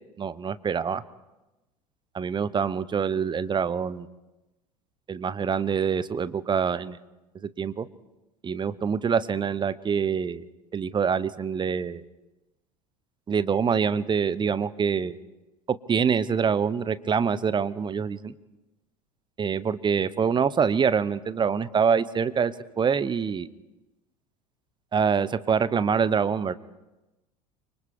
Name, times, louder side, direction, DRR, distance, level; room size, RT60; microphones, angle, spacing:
voice 1, 0.2-1.0 2.1-4.1 5.1-7.0 7.4-7.9 8.4-10.4 10.7-12.0 13.3-15.2 15.9-18.3 19.4-23.5 24.9-26.5, right 6 dB, 25° right, 16 dB, 1.0 m, -25 dB
29.5 x 24.5 x 3.7 m, 1.0 s
figure-of-eight pair, 70°, 20 cm